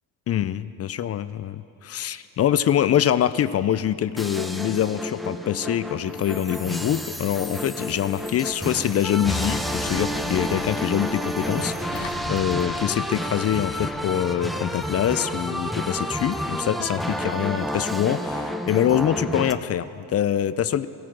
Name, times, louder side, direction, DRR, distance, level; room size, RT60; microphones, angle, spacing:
voice 1, 0.3-20.9, left 10 dB, 35° left, 15 dB, 0.4 m, -24 dB
sound 1, 4.2-19.5, equal, ahead, 0.6 m, -30 dB
Engine, 8.0-14.1, left 8 dB, 55° left, 1.0 m, -41 dB
15.0 x 14.0 x 6.2 m, 2.9 s
cardioid pair, 95°, 45 cm